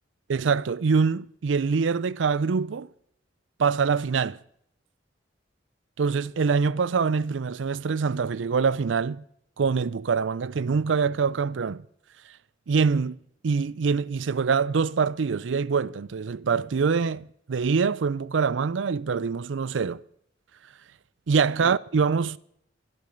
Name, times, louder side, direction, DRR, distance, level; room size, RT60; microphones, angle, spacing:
voice 1, 0.3-2.9 3.6-4.4 6.0-9.2 9.6-11.8 12.7-13.2 13.4-20.0 21.3-22.4, right 5 dB, 80° right, 0.5 m, -24 dB
25.0 x 8.7 x 5.2 m
head